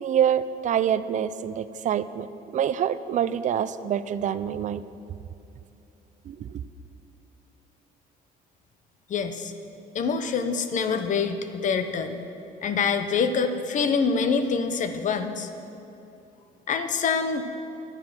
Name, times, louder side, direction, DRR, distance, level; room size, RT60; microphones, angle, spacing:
voice 1, 0.0-2.3 2.5-4.8 6.3-6.6, right 9 dB, 45° right, 14 dB, 0.5 m, -26 dB
voice 2, 9.1-9.5 9.9-12.2 12.6-15.5 16.7-17.4, left 5 dB, 50° left, 9 dB, 0.9 m, -25 dB
11.0 x 9.4 x 6.0 m, 2.8 s
cardioid pair, 110°, 17 cm